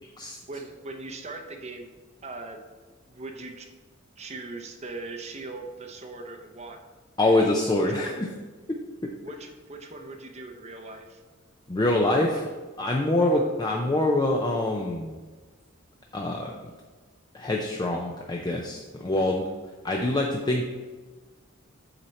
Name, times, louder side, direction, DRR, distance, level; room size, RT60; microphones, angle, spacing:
voice 1, 0.5-1.9 2.2-2.6 3.1-3.7 4.2-6.9 7.2-7.4 7.8-8.2 9.2-11.2 13.2-13.5, right 3 dB, 30° right, 5 dB, 0.7 m, -40 dB
voice 2, 7.2-8.3 8.7-9.1 11.7-12.4 12.8-15.2 16.1-16.6 17.3-19.5 19.8-20.7, left 1 dB, 20° left, 1 dB, 0.5 m, -25 dB
7.9 x 4.4 x 4.1 m, 1.4 s
head